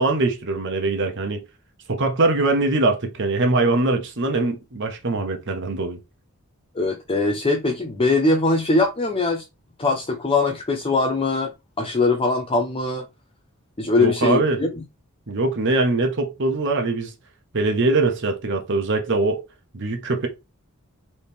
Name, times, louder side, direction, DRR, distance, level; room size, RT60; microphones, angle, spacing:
voice 1, 0.0-1.4 1.9-6.0 14.0-14.6 15.3-17.1 17.5-19.4 19.7-20.3, right 2 dB, 60° right, 1.0 m, -22 dB
voice 2, 6.7-9.5 9.8-11.5 11.8-13.1 13.8-14.8, left 3 dB, 25° left, 0.6 m, -21 dB
4.3 x 3.2 x 3.5 m
head